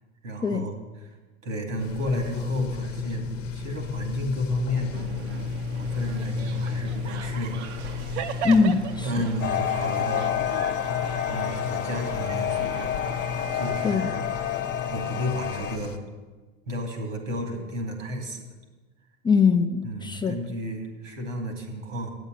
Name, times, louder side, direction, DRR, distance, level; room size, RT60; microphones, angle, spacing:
voice 1, 0.2-0.8 1.4-4.9 5.7-7.6 9.0-10.4 11.3-13.0 13.5-14.3 14.9-16.0 16.7-18.4 19.8-22.2, equal, 85° right, 3 dB, 2.5 m, -32 dB
sound 1, 1.8-16.0, left 6 dB, 80° left, 0.9 m, -34 dB
sound 2, 4.9-13.9, right 7 dB, 65° right, 0.8 m, -38 dB
voice 2, 8.4-9.3 13.8-14.1 19.2-20.4, left 5 dB, 15° left, 6 dB, 0.4 m, -22 dB
sound 3, 9.4-15.8, left 10 dB, 40° left, 1.2 m, -29 dB
8.9 x 8.0 x 7.7 m, 1.3 s
hypercardioid pair, 90°, 37 cm